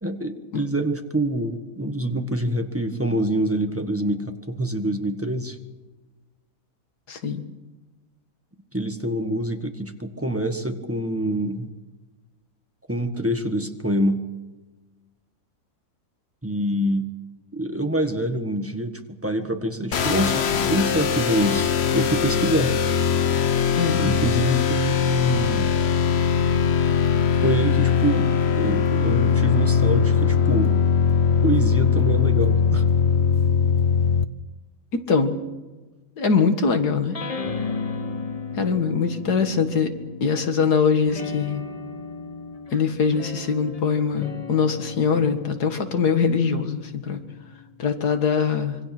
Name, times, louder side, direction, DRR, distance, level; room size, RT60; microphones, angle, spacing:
voice 1, 0.0-5.6 8.7-11.7 12.9-14.2 16.4-17.1 17.5-18.9 19.2-22.8 24.0-25.7 27.4-28.3 28.6-30.7 31.4-32.9, equal, 10° right, 6 dB, 1.4 m, -25 dB
voice 2, 7.1-7.4 23.8-24.1 34.9-35.4 36.2-37.2 38.5-39.9 40.2-41.6 42.7-47.2 47.8-48.8, left 5 dB, 90° left, 7 dB, 2.3 m, -22 dB
sound 1, 19.9-34.2, left 6 dB, 50° left, 1.1 m, -21 dB
sound 2, 37.1-40.5 41.0-47.8, left 4 dB, 25° left, 1.1 m, -35 dB
26.0 x 23.5 x 6.1 m, 1.2 s
omnidirectional pair, 1.6 m